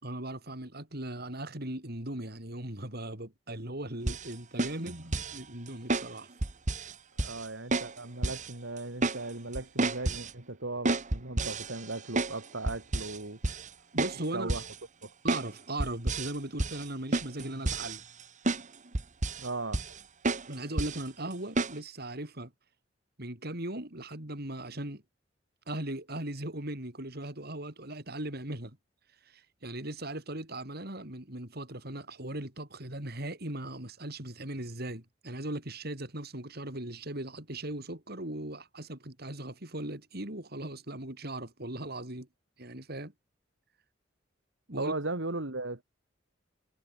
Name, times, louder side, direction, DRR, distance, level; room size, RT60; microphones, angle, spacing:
voice 1, 0.0-6.3 13.9-14.5 15.2-18.0 20.5-22.5 23.2-25.0 25.7-28.8 29.3-42.3 42.6-43.1 44.7-44.9, right 1 dB, 55° right, 5.5 m, -38 dB
sound 1, 4.1-4.3 4.6-5.4 5.9-6.1 6.4-6.9 7.2-7.4 7.7-7.9 8.2-8.5 8.8-9.2 9.5-10.3 10.9-12.4 12.7-13.2 13.4-13.7 14.0-14.2 14.5-14.7 15.3-15.5 15.8-16.3 16.6-16.8 17.1-18.2 18.5-18.6 18.9-19.5 19.7-20.0 20.2-20.5 20.8-21.0 21.6-21.7, right 2 dB, 40° right, 1.8 m, -30 dB
voice 2, 7.2-13.4 14.3-14.6 15.0-15.1 19.4-19.8 44.8-45.8, right 2 dB, 85° right, 2.7 m, -37 dB
head